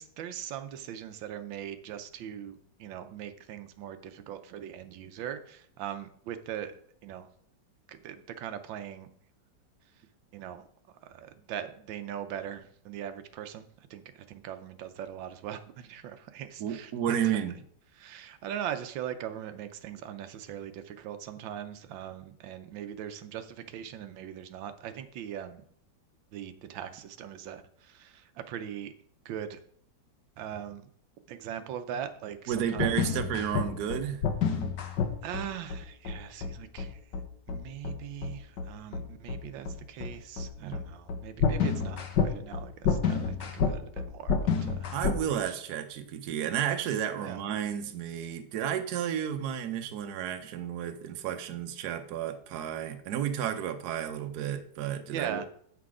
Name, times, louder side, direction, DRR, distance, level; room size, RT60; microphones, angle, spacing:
voice 1, 0.0-6.7 7.0-7.3 7.9-9.1 10.3-10.6 11.0-17.2 18.0-25.6 26.3-28.9 29.2-29.6 30.4-30.9 31.3-33.2 35.2-37.0 37.5-44.7 45.3-45.6 47.2-47.4 55.1-55.5, right 9 dB, 85° right, 9 dB, 1.4 m, -40 dB
voice 2, 16.6-17.6 32.5-34.2 40.6-40.8 44.9-55.5, right 9 dB, 65° right, 8 dB, 1.2 m, -32 dB
sound 1, 32.5-45.2, left 6 dB, 70° left, 1.6 m, -29 dB
8.5 x 6.0 x 4.8 m, 0.62 s
omnidirectional pair, 2.0 m